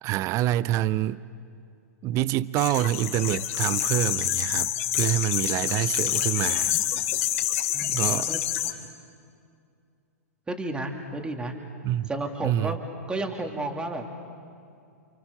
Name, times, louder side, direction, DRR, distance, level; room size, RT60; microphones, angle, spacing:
voice 1, 0.0-1.2 2.0-4.7 4.9-6.7 7.8-8.3 11.8-12.1 12.4-12.8, right 14 dB, 35° right, 17 dB, 0.8 m, -26 dB
sound 1, 2.6-8.7, left 12 dB, 55° left, 3.3 m, -27 dB
voice 2, 7.7-8.4 10.5-11.5 12.1-12.8 13.1-14.0, right 2 dB, 10° right, 3 dB, 2.7 m, -32 dB
30.0 x 27.5 x 6.9 m, 2.4 s
hypercardioid pair, 110°, 9 cm